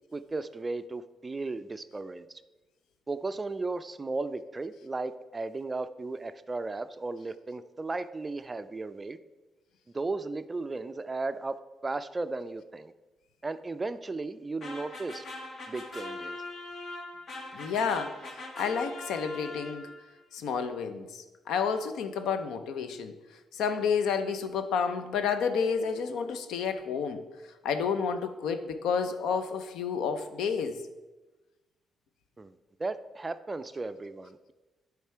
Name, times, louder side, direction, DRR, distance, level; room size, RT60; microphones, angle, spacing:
voice 1, 0.1-2.3 3.1-9.2 9.9-12.9 13.4-15.2 15.7-16.4 32.4-32.5 32.8-34.5, right 3 dB, 20° right, 12 dB, 0.3 m, -35 dB
sound 1, 14.6-20.1, left 2 dB, 50° left, 1.1 m, -42 dB
voice 2, 17.5-19.9 20.3-23.1 23.5-27.2 27.6-30.8, left 6 dB, 85° left, 9 dB, 0.6 m, -30 dB
9.2 x 3.7 x 4.4 m, 1.1 s
cardioid pair, 110°, 0 cm